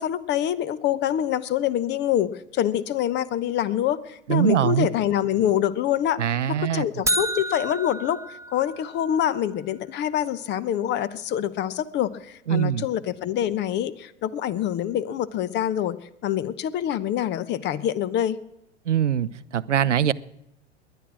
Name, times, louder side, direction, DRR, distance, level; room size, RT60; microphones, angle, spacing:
voice 1, 0.0-18.4, left 11 dB, 30° left, 0.9 m, -26 dB
voice 2, 4.3-4.9 6.2-6.8 12.5-12.9 18.9-20.1, right 9 dB, 80° right, 0.7 m, -22 dB
sound 1, 7.1-9.2, right 1 dB, 10° right, 1.0 m, -29 dB
19.5 x 11.0 x 6.2 m
figure-of-eight pair, 95°, 35 cm